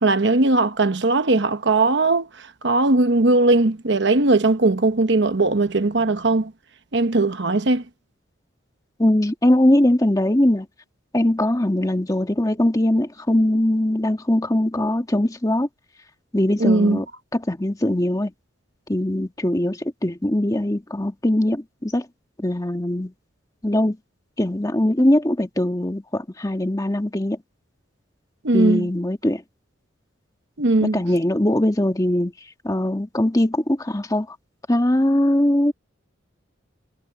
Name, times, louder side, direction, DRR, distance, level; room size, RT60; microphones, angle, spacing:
voice 1, 0.0-6.5 6.9-7.8 16.6-17.0 28.4-28.9 30.6-31.0, right 2 dB, 60° right, 1.1 m, -19 dB
voice 2, 9.0-10.7 11.1-15.7 16.3-17.0 17.3-18.3 18.9-22.0 22.4-23.1 23.6-24.0 24.4-27.4 28.5-29.4 30.8-32.3 32.6-34.4 34.7-35.7, left 1 dB, 20° left, 1.5 m, -21 dB
head